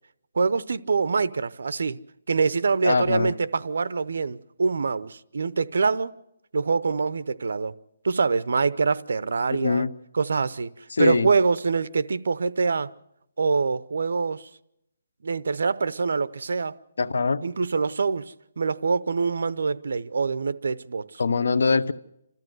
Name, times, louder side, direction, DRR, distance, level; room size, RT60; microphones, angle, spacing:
voice 1, 0.3-2.0 2.3-6.1 6.5-7.7 8.0-9.8 10.1-10.7 11.0-12.9 13.4-14.5 15.2-16.7 17.4-21.2, right 4 dB, 70° right, 0.7 m, -25 dB
voice 2, 2.8-3.3 9.5-9.9 10.9-11.3 17.0-17.4 21.2-21.9, left 4 dB, 80° left, 1.0 m, -22 dB
29.0 x 13.5 x 7.9 m
hypercardioid pair, 175°, 0 cm